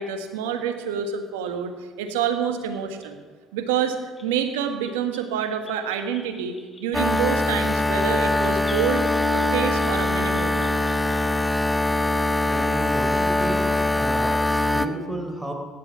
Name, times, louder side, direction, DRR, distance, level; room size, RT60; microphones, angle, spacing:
voice 1, 0.0-1.7 2.0-3.2 3.5-4.0 4.2-9.0 9.3-10.8, right 7 dB, 85° right, 7 dB, 1.4 m, -27 dB
sound 1, 1.4-1.5 2.1-2.2 2.9-3.1 3.7-3.8 4.2-11.4 12.8-12.9 14.2-14.6, left 3 dB, 30° left, 3.5 m, -47 dB
sound 2, 6.9-14.9, left 2 dB, 10° left, 0.9 m, -22 dB
voice 2, 12.5-15.5, right 1 dB, 15° right, 3 dB, 3.7 m, -32 dB
15.5 x 11.0 x 5.7 m, 1.4 s
hypercardioid pair, 60°, 0 cm